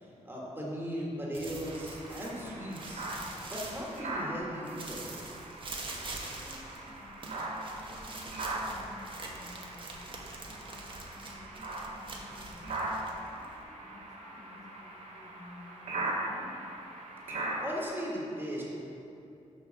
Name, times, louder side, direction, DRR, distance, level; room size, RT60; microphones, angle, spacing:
voice 1, 0.2-3.0 3.4-5.2 17.5-18.6, equal, 15° right, -5 dB, 1.6 m, -37 dB
sound 1, 1.3-4.3 4.6-13.6, right 2 dB, 40° right, 1.0 m, -44 dB
sound 2, 1.6-17.8, right 2 dB, 90° right, 1.9 m, -40 dB
voice 2, 6.3-10.2 10.5-10.8 11.2-12.8 13.3-16.6, left 2 dB, 30° left, -5 dB, 1.3 m, -53 dB
6.2 x 5.1 x 6.4 m, 2.8 s
wide cardioid pair, 105°, 13 cm